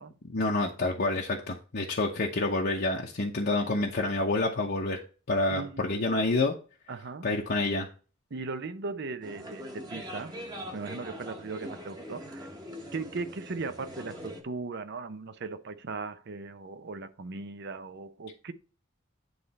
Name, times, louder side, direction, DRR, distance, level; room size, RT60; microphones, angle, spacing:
voice 1, 0.3-5.0 5.3-6.5 7.2-7.9, left 2 dB, 50° left, 0.8 m, -28 dB
voice 2, 5.5-5.9 6.9-7.3 8.3-10.3 10.7-12.5 12.9-18.5, right 3 dB, 55° right, 0.6 m, -38 dB
sound 1, 9.2-14.4, equal, 20° right, 1.1 m, -42 dB
9.5 x 3.3 x 4.2 m
head